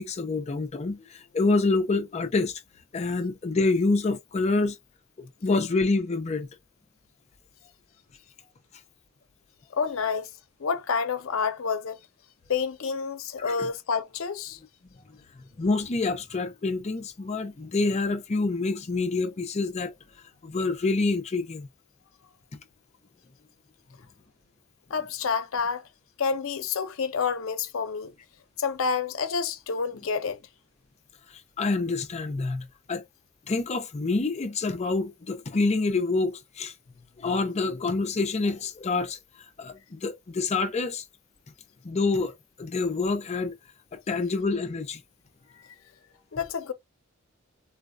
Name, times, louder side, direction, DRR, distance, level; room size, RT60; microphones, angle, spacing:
voice 1, 0.0-2.6 2.9-4.8 5.2-6.5 13.4-13.7 15.6-19.9 20.4-21.7 31.6-33.0 33.5-36.7 37.2-39.2 39.6-41.0 41.8-43.5 43.9-45.0, left 3 dB, 35° left, 0.5 m, -27 dB
voice 2, 9.7-10.3 10.6-12.0 12.5-14.6 24.9-25.9 26.2-28.1 28.6-30.4 46.3-46.7, left 5 dB, 90° left, 0.6 m, -28 dB
3.9 x 2.2 x 2.3 m
head